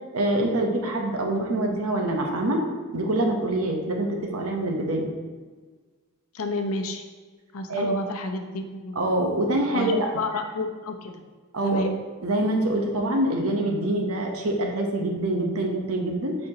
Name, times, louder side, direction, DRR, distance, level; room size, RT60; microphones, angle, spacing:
voice 1, 0.1-2.6 2.9-5.1 7.7-7.9 8.9-10.1 11.5-11.9 12.2-16.4, right 1 dB, 90° right, 2 dB, 1.0 m, -25 dB
voice 2, 6.3-7.0 7.5-9.0 9.7-11.2 11.6-11.9, left 2 dB, 85° left, 5 dB, 0.7 m, -30 dB
8.7 x 4.4 x 2.9 m, 1.4 s
head